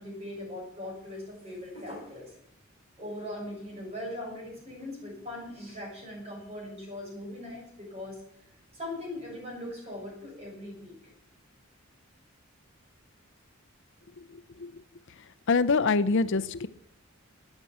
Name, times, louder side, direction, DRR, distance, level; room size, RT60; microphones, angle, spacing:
voice 1, 0.0-2.3 3.0-8.2 8.7-10.9, left 1 dB, 30° right, -2 dB, 7.2 m, -40 dB
voice 2, 14.3-14.7 15.5-16.7, left 4 dB, 65° left, 15 dB, 0.6 m, -25 dB
13.5 x 9.0 x 8.6 m, 0.76 s
head